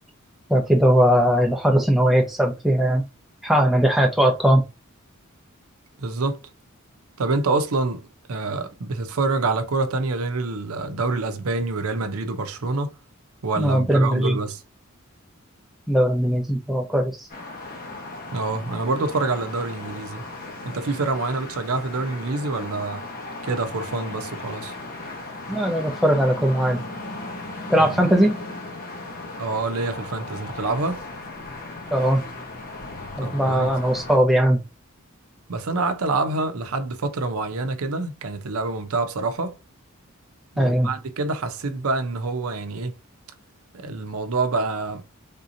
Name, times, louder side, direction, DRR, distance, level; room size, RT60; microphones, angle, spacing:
voice 1, 0.5-3.1 3.4-4.6 13.6-14.4 15.9-17.3 25.5-26.8 27.7-28.4 31.9-32.2 33.2-34.6 40.6-40.9, equal, ahead, 0.7 m, -19 dB
voice 2, 6.0-6.4 7.2-12.9 13.4-14.6 18.3-20.2 20.6-23.0 23.4-24.7 27.7-28.0 29.4-31.0 33.2-33.7 35.5-39.6 40.5-42.9 43.7-45.0, right 3 dB, 90° right, 0.6 m, -26 dB
sound 1, 17.3-34.2, left 2 dB, 45° left, 1.0 m, -37 dB
3.6 x 2.8 x 2.6 m
head